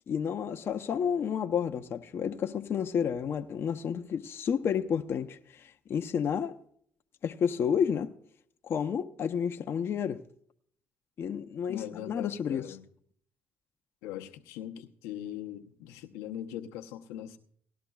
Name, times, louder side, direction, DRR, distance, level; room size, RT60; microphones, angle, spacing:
voice 1, 0.1-6.6 7.2-8.1 8.6-10.2 11.2-12.8, left 7 dB, 55° left, 0.7 m, -31 dB
voice 2, 11.7-12.8 14.0-17.4, left 11 dB, 85° left, 0.8 m, -40 dB
18.5 x 12.0 x 2.3 m
supercardioid pair, 70°, 5 cm